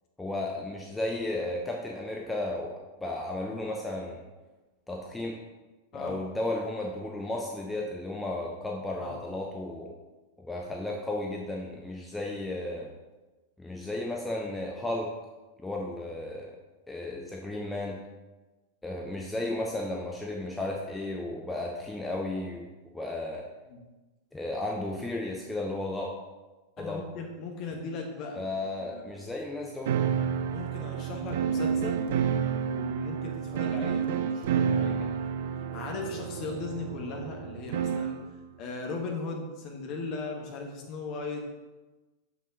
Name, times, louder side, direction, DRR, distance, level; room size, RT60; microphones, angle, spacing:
voice 1, 0.2-2.7 3.0-4.2 4.9-5.3 5.9-9.9 10.4-12.9 13.6-15.1 15.6-16.5 16.9-18.0 18.8-22.7 22.9-23.5 24.3-26.1 26.8-27.1 28.3-29.9, left 2 dB, 10° left, -1 dB, 0.8 m, -34 dB
voice 2, 26.8-28.4 28.8-29.1 30.5-32.0 32.7-35.2 35.7-38.2 38.6-41.5, left 3 dB, 40° left, 1 dB, 1.5 m, -38 dB
sound 1, 29.8-38.3, right 7 dB, 55° right, 0.5 m, -30 dB
6.9 x 5.8 x 3.8 m, 1.2 s
figure-of-eight pair, 90°, 0 cm